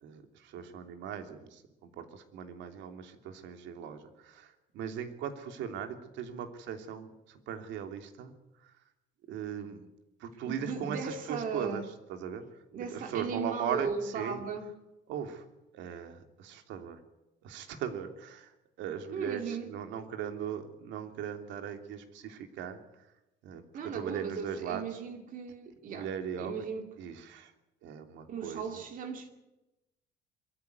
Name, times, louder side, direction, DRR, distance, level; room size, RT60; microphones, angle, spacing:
voice 1, 0.0-8.3 9.3-9.9 10.2-11.8 12.1-12.4 12.9-14.4 15.1-15.4 15.7-17.0 17.4-22.8 23.4-24.8 25.9-26.6 27.0-27.5 27.8-28.6, right 8 dB, 85° right, 7 dB, 3.1 m, -39 dB
voice 2, 10.4-11.8 12.7-14.7 19.1-19.7 23.7-26.1 26.4-26.9 28.3-29.3, right 5 dB, 45° right, 5 dB, 2.4 m, -37 dB
23.5 x 14.5 x 9.6 m, 0.96 s
cardioid pair, 175°, 18 cm